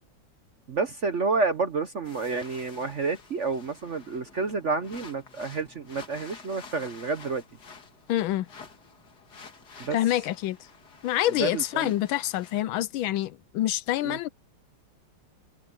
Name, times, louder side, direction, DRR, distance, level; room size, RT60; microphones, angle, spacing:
voice 1, 0.7-7.4 9.8-10.0 11.4-11.9 14.0-14.2, right 4 dB, 45° right, 1.0 m, -29 dB
sound 1, 2.0-12.6, left 5 dB, 50° left, 2.6 m, -50 dB
voice 2, 8.1-8.5 9.9-10.6 11.0-14.3, left 13 dB, 75° left, 1.3 m, -26 dB
omnidirectional pair, 2.3 m